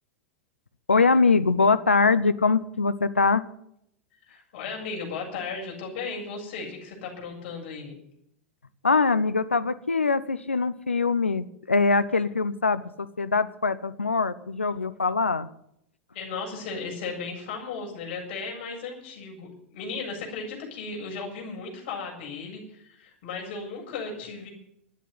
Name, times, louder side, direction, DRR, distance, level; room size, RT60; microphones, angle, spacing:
voice 1, 0.9-3.4 8.8-15.5, left 4 dB, 90° left, 13 dB, 0.8 m, -23 dB
voice 2, 4.3-8.0 16.1-24.5, left 4 dB, 55° left, 0 dB, 7.5 m, -36 dB
13.0 x 10.0 x 9.7 m, 0.73 s
figure-of-eight pair, 90°, 6 cm